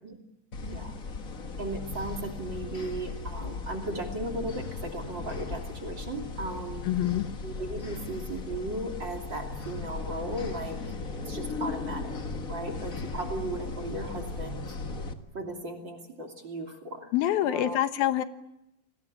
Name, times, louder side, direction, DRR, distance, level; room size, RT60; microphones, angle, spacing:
sound 1, 0.5-15.1, left 4 dB, 60° left, 0.8 m, -37 dB
voice 1, 0.6-1.0 1.6-6.9 7.4-11.0 11.2-12.1 12.5-14.7 15.3-17.1 17.4-17.8, right 2 dB, 35° right, 3 dB, 3.2 m, -36 dB
voice 2, 6.8-7.3 17.1-18.2, left 12 dB, 80° left, 10 dB, 3.0 m, -26 dB
28.5 x 20.5 x 8.7 m, 0.89 s
omnidirectional pair, 4.2 m